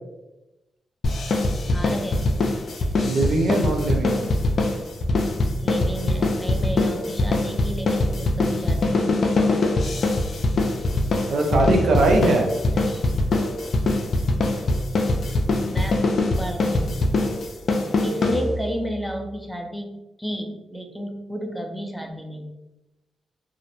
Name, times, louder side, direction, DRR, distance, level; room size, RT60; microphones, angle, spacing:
sound 1, 1.0-18.8, left 2 dB, 60° left, 0.3 m, -22 dB
voice 1, 1.7-2.3 5.6-9.4 12.7-13.1 15.7-17.1 18.0-22.5, equal, ahead, 3 dB, 0.5 m, -32 dB
voice 2, 3.0-4.2 11.3-12.5, right 2 dB, 70° right, 2 dB, 0.5 m, -21 dB
2.4 x 2.0 x 2.8 m, 0.98 s
supercardioid pair, 50°, 0 cm